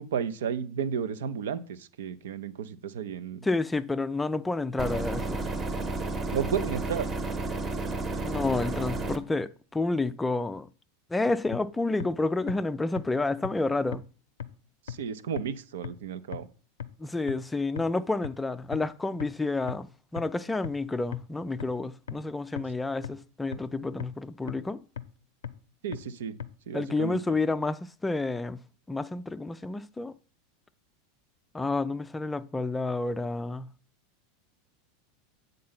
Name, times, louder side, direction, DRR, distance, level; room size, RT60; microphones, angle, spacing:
voice 1, 0.0-3.5 6.3-7.1 14.9-16.5 25.8-26.4 26.7-27.2, right 7 dB, 65° right, 0.6 m, -33 dB
voice 2, 3.4-5.4 8.2-10.7 11.1-14.0 17.0-24.8 26.7-28.6 28.9-30.1 31.5-33.7, left 3 dB, 10° left, 0.4 m, -30 dB
sound 1, 4.8-9.2, right 2 dB, 25° right, 1.0 m, -32 dB
sound 2, 11.5-11.6 12.0-12.1 12.5-12.6 13.0-13.1 13.4-13.5 13.9-14.0 14.4-14.5 14.9-15.0 15.4-15.5 15.8-15.9 16.3-16.4 16.8-16.9 17.3-17.4 17.8-17.9 18.2-18.3 18.7-18.8 19.2-19.3 19.7-19.8 20.2-20.3 20.6-20.7 21.1-21.2 21.6-21.7 22.1-22.2 22.6-22.7 23.0-23.1 23.5-23.6 24.0-24.1 24.5-24.6 25.0-25.1 25.4-25.5 25.9-26.0 26.4-26.5, left 8 dB, 70° left, 0.5 m, -35 dB
8.5 x 3.8 x 5.7 m
figure-of-eight pair, 85°, 0 cm